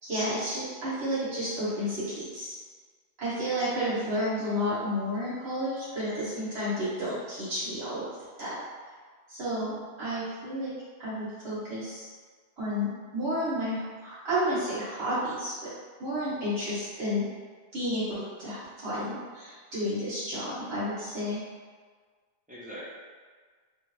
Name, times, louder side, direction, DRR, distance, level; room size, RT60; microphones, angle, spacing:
voice 1, 0.0-2.6 3.2-8.1 8.4-8.6 9.3-10.7 11.0-12.1 12.6-15.7 16.0-17.2 17.7-21.4, equal, 80° right, -11 dB, 1.5 m, -31 dB
voice 2, 3.5-4.1 6.6-6.9 22.5-22.9, equal, 10° right, -9 dB, 0.8 m, -45 dB
3.4 x 2.5 x 3.1 m, 1.5 s
omnidirectional pair, 1.1 m